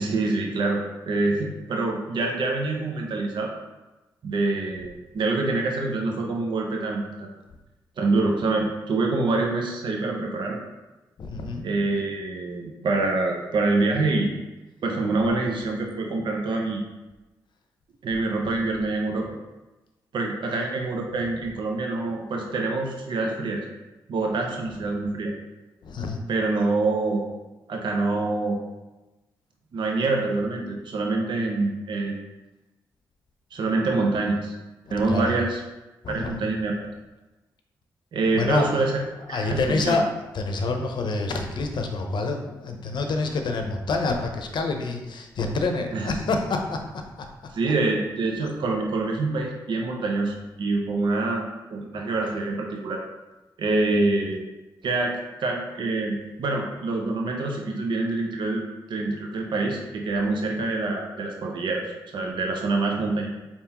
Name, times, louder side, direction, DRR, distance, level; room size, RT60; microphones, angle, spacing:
voice 1, 0.0-3.5 4.2-7.3 8.0-10.6 11.6-14.3 14.8-16.8 18.0-19.3 20.1-23.6 24.1-25.3 26.3-27.2 27.7-28.6 29.7-32.1 33.5-34.5 34.9-35.6 36.1-36.9 38.1-38.9 39.3-40.0 45.9-46.1 47.5-53.0 53.6-54.4 54.8-58.6 58.9-61.9 62.1-63.3, right 3 dB, 65° right, 1 dB, 0.8 m, -26 dB
voice 2, 11.2-11.6 25.8-26.2 35.1-35.4 36.0-36.4 38.3-38.7 39.3-47.0, left 3 dB, 60° left, 4 dB, 0.7 m, -27 dB
4.3 x 3.6 x 2.9 m, 1.1 s
supercardioid pair, 55°, 9 cm